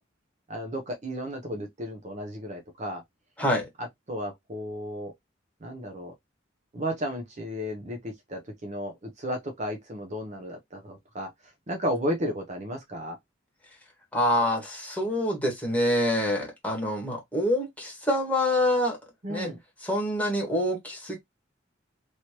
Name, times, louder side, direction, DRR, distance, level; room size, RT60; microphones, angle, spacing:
voice 1, 0.5-3.0 3.8-5.1 5.6-6.1 6.7-11.3 11.7-13.2 19.2-19.6, equal, 40° right, 0.7 m, -33 dB
voice 2, 3.4-3.7 14.1-19.0 19.3-19.5 19.8-21.2, left 1 dB, 10° left, 1.4 m, -26 dB
3.1 x 2.9 x 2.9 m
head